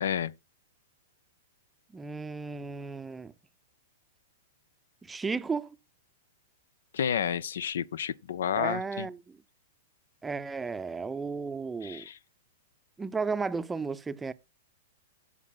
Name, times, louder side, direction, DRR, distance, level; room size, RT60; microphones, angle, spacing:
voice 1, 0.0-0.3 6.9-9.1 11.8-12.2, left 8 dB, 70° left, 0.4 m, -30 dB
voice 2, 1.9-3.3 5.1-5.8 8.5-9.2 10.2-12.1 13.0-14.3, right 4 dB, 10° right, 0.6 m, -34 dB
16.5 x 6.7 x 2.3 m
hypercardioid pair, 110°, 0 cm